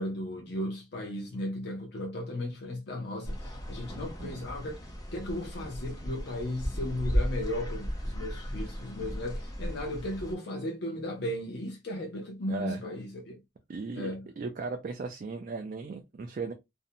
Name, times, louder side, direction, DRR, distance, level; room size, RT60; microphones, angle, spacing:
voice 1, 0.0-13.4 13.9-14.2, left 1 dB, 60° left, 0.6 m, -36 dB
sound 1, 3.2-10.3, equal, 20° left, 0.6 m, -35 dB
voice 2, 3.9-4.5 12.5-12.8 13.7-16.5, right 4 dB, 45° right, 0.4 m, -37 dB
2.5 x 2.1 x 2.6 m
head